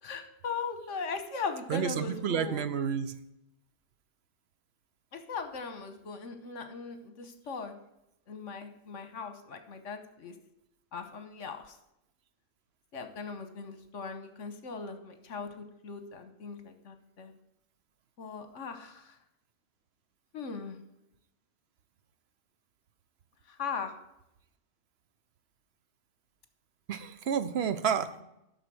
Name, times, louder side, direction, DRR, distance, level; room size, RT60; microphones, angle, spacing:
voice 1, 0.0-2.6 5.1-7.7 8.3-10.3 10.9-11.8 12.9-17.3 18.2-19.2 20.3-20.8 23.5-23.9, left 5 dB, 65° left, 8 dB, 1.4 m, -39 dB
voice 2, 1.7-3.1 26.9-28.2, right 7 dB, 60° right, 12 dB, 0.9 m, -30 dB
11.0 x 6.2 x 6.2 m, 0.84 s
omnidirectional pair, 1.4 m